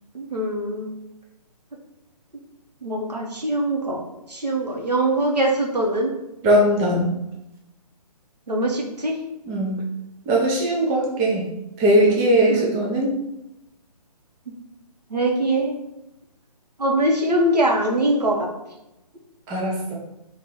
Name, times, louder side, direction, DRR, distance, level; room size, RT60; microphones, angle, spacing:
voice 1, 0.1-0.9 2.8-4.0 4.3-6.1 8.5-9.2 12.5-12.7 15.1-15.8 16.8-18.5, right 1 dB, 80° right, -1 dB, 1.5 m, -22 dB
voice 2, 6.4-7.1 9.5-9.8 10.3-11.5 11.8-13.1 19.5-19.9, right 1 dB, 10° right, -3 dB, 0.4 m, -19 dB
4.0 x 2.9 x 4.6 m, 0.90 s
figure-of-eight pair, 145°, 20 cm